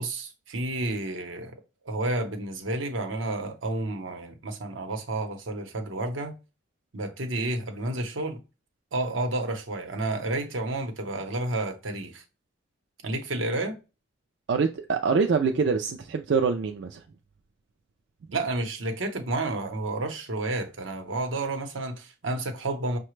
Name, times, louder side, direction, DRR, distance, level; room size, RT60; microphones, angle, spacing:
voice 1, 0.0-1.5 1.8-6.3 6.9-8.4 8.9-12.2 13.0-13.8 18.3-23.0, right 2 dB, 90° right, 0.9 m, -30 dB
voice 2, 14.5-17.0, right 5 dB, 65° right, 0.3 m, -25 dB
5.7 x 2.2 x 3.1 m
head